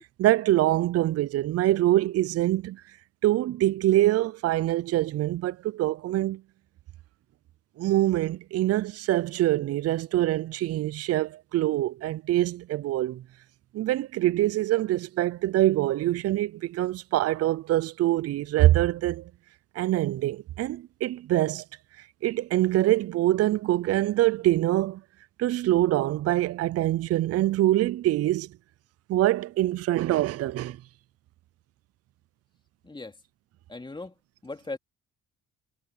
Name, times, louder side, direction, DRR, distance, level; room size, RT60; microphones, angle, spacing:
voice 1, 0.2-2.8 3.2-6.4 7.8-13.2 13.7-19.3 19.8-21.6 22.2-25.0 25.4-28.5 29.1-30.8, right 15 dB, 50° right, 0.5 m, -24 dB
voice 2, 32.8-33.2 33.7-34.1 34.4-34.8, left 2 dB, 15° left, 2.7 m, -38 dB
cardioid pair, 90°, 31 cm